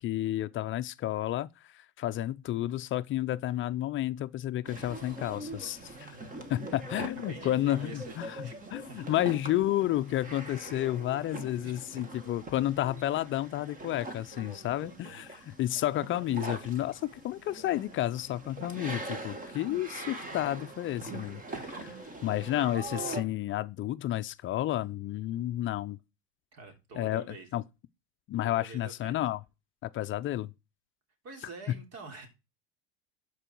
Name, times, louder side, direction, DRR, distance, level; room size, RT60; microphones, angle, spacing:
voice 1, 0.0-6.2 6.5-21.9 22.2-26.0 27.0-27.2 27.5-27.6 28.3-29.4 29.8-30.5, left 14 dB, 40° left, 0.5 m, -31 dB
sound 1, 4.6-23.2, right 2 dB, 25° right, 1.9 m, -43 dB
voice 2, 7.0-9.1 9.4-9.5 11.6-11.7 14.6-15.2 26.5-27.5 28.4-29.2 31.2-32.3, right 3 dB, 50° right, 3.3 m, -47 dB
12.0 x 4.8 x 4.5 m
supercardioid pair, 120°, 32 cm